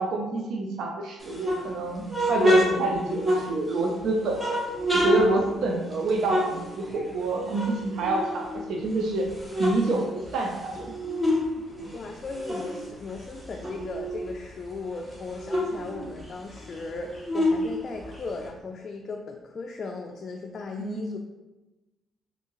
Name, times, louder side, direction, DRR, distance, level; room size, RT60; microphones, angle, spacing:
voice 1, 0.0-4.4 4.9-9.3 9.6-10.9 11.7-11.9 20.8-21.0, right 2 dB, 75° right, 1 dB, 0.4 m, -27 dB
sound 1, 1.2-3.9 4.3-7.2 7.5-8.8 9.2-11.5 11.8-14.3 14.7-14.8 15.0-18.5, equal, 15° right, 1.0 m, -28 dB
voice 2, 11.9-21.2, left 3 dB, 50° left, 2 dB, 0.3 m, -37 dB
3.4 x 2.7 x 2.9 m, 1.1 s
cardioid pair, 90°, 0 cm